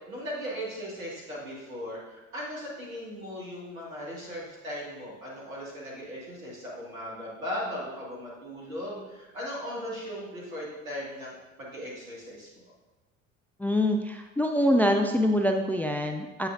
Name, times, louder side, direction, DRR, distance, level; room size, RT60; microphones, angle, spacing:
voice 1, 0.1-12.5, equal, 85° right, -6 dB, 2.2 m, -38 dB
voice 2, 13.6-16.5, left 1 dB, 5° left, 4 dB, 0.3 m, -25 dB
8.2 x 5.8 x 2.7 m, 1.1 s
figure-of-eight pair, 65°, 40 cm